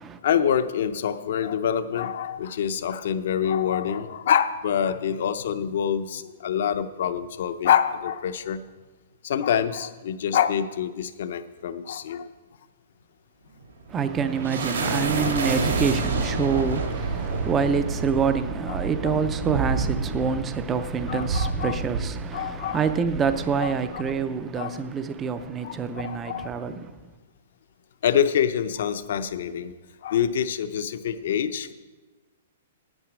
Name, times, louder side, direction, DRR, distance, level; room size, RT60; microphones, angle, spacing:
voice 1, 0.2-8.6 9.2-12.3 14.8-14.9 15.2-15.3 16.5-16.6 17.3-17.4 18.7-19.2 21.1-21.8 22.3-22.8 23.6-24.0 24.6-24.8 25.6-26.5 28.0-29.7 30.0-31.7, left 8 dB, 50° left, 0.6 m, -26 dB
sound 1, 13.6-24.4, right 3 dB, 80° right, 2.2 m, -29 dB
voice 2, 13.9-27.0, right 6 dB, 10° right, 0.4 m, -26 dB
9.4 x 8.9 x 6.1 m
hypercardioid pair, 175°, 0 cm